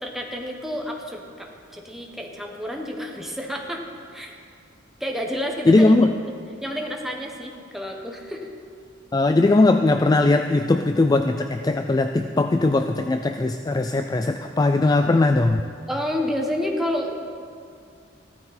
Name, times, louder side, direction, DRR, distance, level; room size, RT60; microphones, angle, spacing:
voice 1, 0.0-3.8 4.1-4.4 5.0-6.1 6.6-8.5 15.9-17.1, equal, ahead, 1 dB, 1.2 m, -30 dB
voice 2, 5.7-6.1 9.1-15.6, left 2 dB, 20° left, 7 dB, 0.3 m, -19 dB
15.0 x 13.0 x 4.3 m, 2.3 s
head